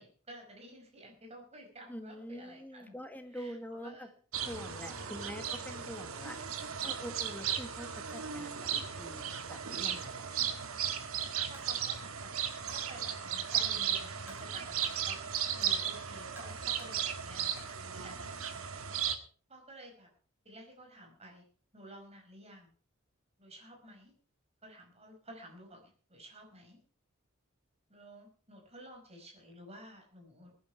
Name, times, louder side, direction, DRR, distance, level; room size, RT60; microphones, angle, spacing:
voice 1, 0.0-3.0 3.3-4.1 4.8-5.5 10.4-10.9 11.5-12.3 12.6-18.7 19.5-20.1 20.5-21.5 21.7-22.7 23.4-24.1 24.6-26.8 27.9-30.5, right 1 dB, 30° right, 2 dB, 5.2 m, -52 dB
voice 2, 1.9-4.1 4.4-10.4, equal, 10° left, 6 dB, 1.7 m, -46 dB
sound 1, 4.3-19.1, right 8 dB, 80° right, 1.7 m, -36 dB
Coin (dropping), 11.5-11.8 12.7-13.0 13.5-13.7 14.3-14.4 14.8-15.0 15.6-15.8 16.4-17.1 17.6-18.5, equal, 10° right, 3.9 m, -56 dB
20.0 x 10.5 x 4.6 m, 0.42 s
head